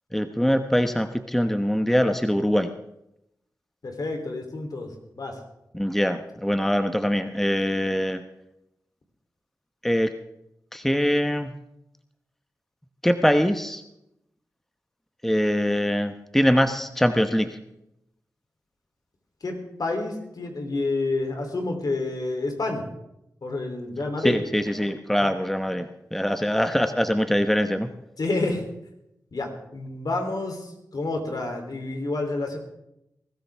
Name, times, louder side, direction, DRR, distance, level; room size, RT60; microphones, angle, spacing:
voice 1, 0.1-2.7 5.7-8.2 9.8-10.1 10.7-11.5 13.0-13.8 15.2-17.6 24.2-27.9, equal, 5° left, 9 dB, 1.0 m, -23 dB
voice 2, 3.8-4.9 5.1-5.4 19.4-22.8 23.4-24.4 25.1-25.3 28.2-28.6 29.3-32.6, left 2 dB, 65° left, 3 dB, 3.2 m, -29 dB
21.5 x 13.0 x 3.5 m, 0.84 s
cardioid pair, 40°, 7 cm